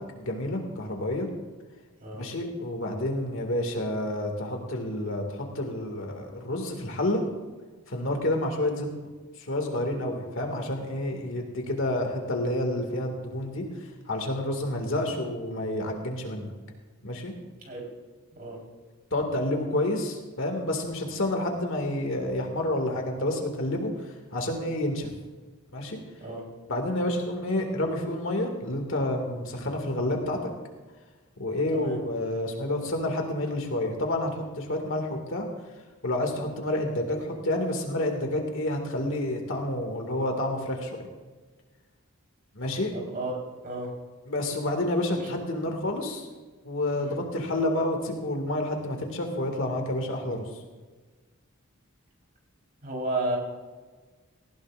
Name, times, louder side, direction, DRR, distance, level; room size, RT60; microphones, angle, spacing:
voice 1, 0.1-1.3 2.1-7.2 7.9-9.1 9.4-16.5 17.0-17.3 19.1-25.1 25.7-26.0 26.7-30.4 31.4-35.5 36.0-41.0 42.6-42.9 44.3-46.3 46.6-50.6, left 1 dB, 60° left, 2 dB, 2.1 m, -29 dB
voice 2, 42.9-43.9 45.2-45.3 47.0-47.1 52.8-53.4, right 2 dB, 40° right, -2 dB, 4.0 m, -33 dB
18.0 x 15.5 x 2.5 m, 1.3 s
head